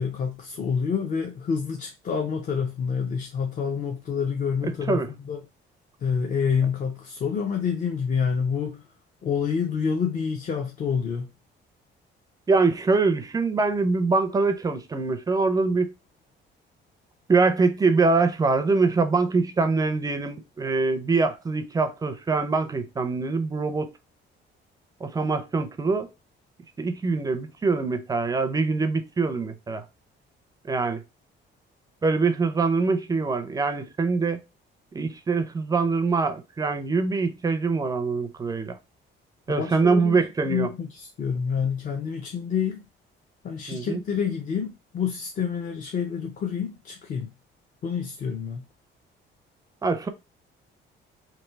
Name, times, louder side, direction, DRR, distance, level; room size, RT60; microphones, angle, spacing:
voice 1, 0.0-5.4 6.0-8.8 9.2-11.3 39.5-40.2 40.4-42.8 43.4-47.3 47.8-48.7, left 6 dB, 40° left, 0.5 m, -28 dB
voice 2, 4.6-5.1 12.5-15.9 17.3-23.9 25.0-26.1 26.8-29.8 30.7-31.0 32.0-34.4 34.9-38.8 39.5-40.7 43.7-44.0 49.8-50.1, right 4 dB, 20° right, 0.4 m, -24 dB
3.2 x 2.6 x 4.4 m
cardioid pair, 165°, 20 cm